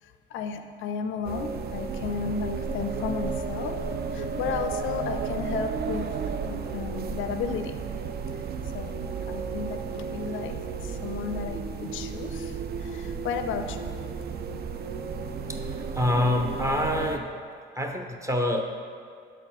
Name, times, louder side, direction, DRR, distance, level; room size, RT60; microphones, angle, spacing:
voice 1, 0.0-3.8 4.1-7.8 8.3-14.0, left 6 dB, 80° left, 7 dB, 0.4 m, -34 dB
sound 1, 1.2-17.2, right 5 dB, 50° right, 0.5 m, -33 dB
voice 2, 15.9-17.3 17.7-18.6, left 1 dB, 15° right, 3 dB, 0.7 m, -26 dB
7.2 x 4.4 x 4.1 m, 2.2 s
cardioid pair, 90°, 20 cm